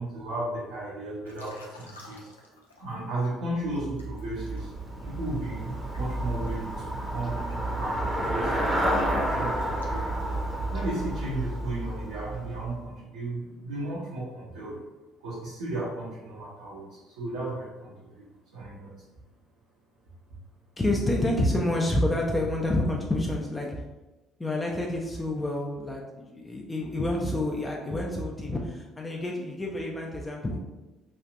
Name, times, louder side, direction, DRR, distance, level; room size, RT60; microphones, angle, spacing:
voice 1, 0.0-2.3 2.8-4.7 5.1-7.5 7.8-10.3 10.7-14.8 15.2-18.3 18.5-19.0, right 2 dB, 70° right, -8 dB, 0.6 m, -35 dB
Liquid, 1.2-3.3 3.7-10.7, left 2 dB, 85° left, 0.3 m, -52 dB
Traffic noise roadway noise / Bicycle, 3.7-12.9, right 1 dB, 20° right, 0.7 m, -30 dB
voice 2, 20.8-23.8 24.4-30.6, left 1 dB, 20° left, -1 dB, 0.4 m, -28 dB
3.1 x 2.4 x 2.4 m, 1.1 s
figure-of-eight pair, 50°, 0 cm